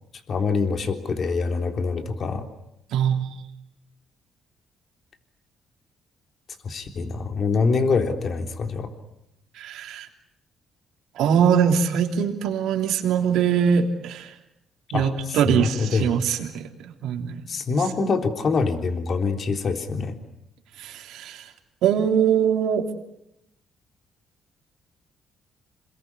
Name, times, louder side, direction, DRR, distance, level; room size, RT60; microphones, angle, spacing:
voice 1, 0.3-2.5 6.6-8.9 14.9-16.1 17.5-20.2, left 4 dB, 50° left, 6 dB, 3.5 m, -25 dB
voice 2, 2.9-3.3 9.5-10.1 11.1-14.3 14.9-17.4 20.8-21.5 21.8-22.9, right 8 dB, 85° right, 4 dB, 3.2 m, -22 dB
28.0 x 21.5 x 9.7 m, 0.80 s
cardioid pair, 90°, 0 cm